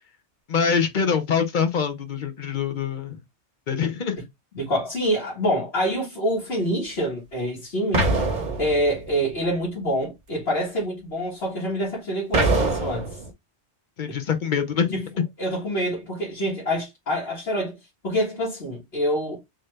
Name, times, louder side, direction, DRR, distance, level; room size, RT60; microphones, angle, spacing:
voice 1, 0.5-3.2 3.7-4.2 14.0-14.9, left 6 dB, 50° left, 0.8 m, -24 dB
voice 2, 4.5-8.1 8.6-13.2 14.1-14.2 14.9-15.0 15.4-17.8 18.0-19.4, equal, 65° left, 1.8 m, -26 dB
sound 1, 7.9-9.2 12.3-13.3, right 2 dB, 45° right, 1.0 m, -23 dB
3.8 x 2.7 x 3.2 m
omnidirectional pair, 1.1 m